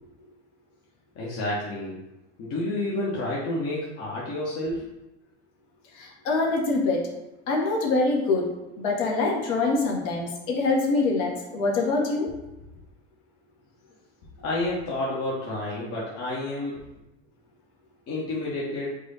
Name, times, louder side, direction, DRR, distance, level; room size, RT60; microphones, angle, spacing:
voice 1, 1.1-2.0 2.4-4.9 14.4-16.9 18.1-18.9, left 1 dB, 45° left, -6 dB, 1.3 m, -30 dB
voice 2, 5.9-7.0 7.5-8.5 8.8-12.3, left 3 dB, 60° left, -1 dB, 1.5 m, -24 dB
4.8 x 2.6 x 4.1 m, 0.97 s
hypercardioid pair, 80°, 35 cm